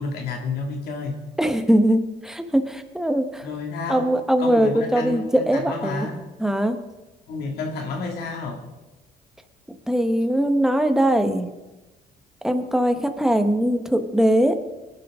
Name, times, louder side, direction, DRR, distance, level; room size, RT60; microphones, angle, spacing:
voice 1, 0.0-1.2 3.4-4.1 4.4-6.2 7.3-8.6, left 3 dB, 70° left, 2 dB, 2.4 m, -30 dB
voice 2, 1.4-3.5 3.9-6.1 6.4-6.8 9.9-11.5 12.4-14.6, right 1 dB, 5° right, 7 dB, 1.2 m, -21 dB
21.0 x 11.0 x 3.7 m, 1.1 s
cardioid pair, 110°, 17 cm